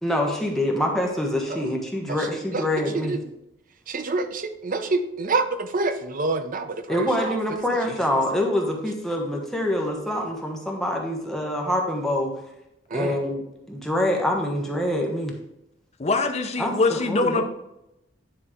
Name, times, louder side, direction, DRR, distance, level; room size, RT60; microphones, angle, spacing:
voice 1, 0.0-3.2 6.9-12.3 12.9-13.4 13.7-15.3 16.6-17.4, left 1 dB, ahead, -1 dB, 1.2 m, -25 dB
voice 2, 3.9-7.4 12.9-13.2, right 3 dB, 45° right, 9 dB, 0.6 m, -27 dB
voice 3, 16.0-17.4, left 3 dB, 35° left, 5 dB, 0.7 m, -23 dB
9.9 x 3.4 x 5.0 m, 0.86 s
head